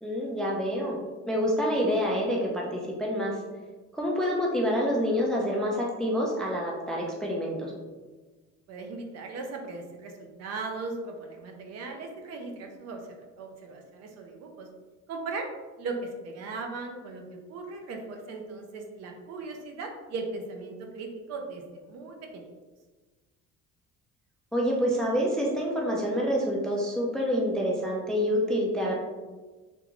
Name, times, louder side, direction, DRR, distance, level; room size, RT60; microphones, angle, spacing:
voice 1, 0.0-1.0 1.3-3.4 3.9-7.7 24.5-28.9, equal, ahead, -2 dB, 0.3 m, -27 dB
voice 2, 8.7-14.7 15.1-15.5 15.8-22.5, right 3 dB, 55° right, 3 dB, 0.6 m, -38 dB
3.6 x 2.5 x 2.9 m, 1.3 s
cardioid pair, 145°, 30 cm